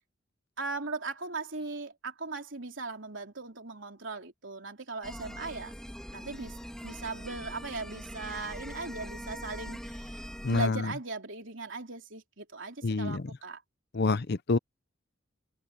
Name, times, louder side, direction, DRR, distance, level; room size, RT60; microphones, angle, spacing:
voice 1, 0.6-5.7 6.1-6.5 6.8-13.6, right 3 dB, 60° right, 3.8 m, -38 dB
sound 1, 5.0-10.7, equal, 5° left, 2.0 m, -42 dB
voice 2, 12.8-13.2 14.0-14.6, left 3 dB, 50° left, 0.6 m, -27 dB
head